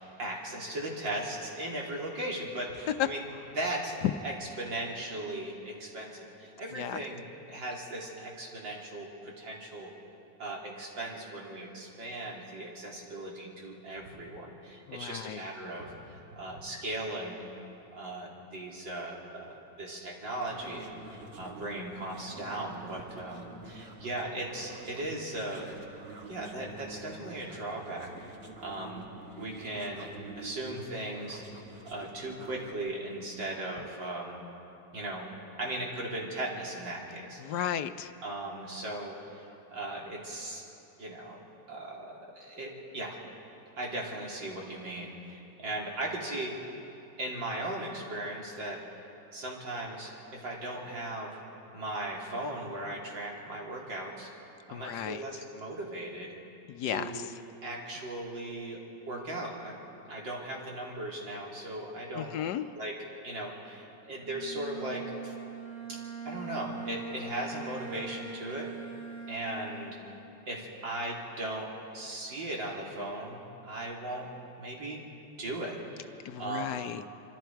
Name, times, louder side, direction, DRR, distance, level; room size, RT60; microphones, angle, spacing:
voice 1, 0.2-3.2 3.5-3.9 4.2-9.9 10.4-17.5 17.9-25.7 26.3-28.1 28.6-29.1 29.4-31.4 31.8-34.4 34.9-35.3 35.6-37.6 38.2-40.6 41.0-41.4 41.7-43.2 43.8-46.6 47.2-48.8 49.3-51.4 51.7-54.3 54.7-56.3 56.9-57.3 57.6-59.8 60.1-62.3 62.7-63.0 63.2-65.3 65.9-66.0 66.3-68.7 69.3-70.1 70.5-74.3 74.6-75.0 75.4-76.8, right 1 dB, 80° right, -2 dB, 3.8 m, -38 dB
voice 2, 14.9-15.4 37.4-38.1 54.7-55.2 56.7-57.3 62.2-62.6 76.2-77.1, left 10 dB, 70° left, 10 dB, 1.2 m, -33 dB
sound 1, 20.4-32.7, right 3 dB, 35° right, 1.7 m, -48 dB
Bowed string instrument, 64.2-70.2, right 5 dB, 50° right, 7.5 m, -42 dB
26.0 x 25.0 x 4.6 m, 2.8 s
omnidirectional pair, 2.0 m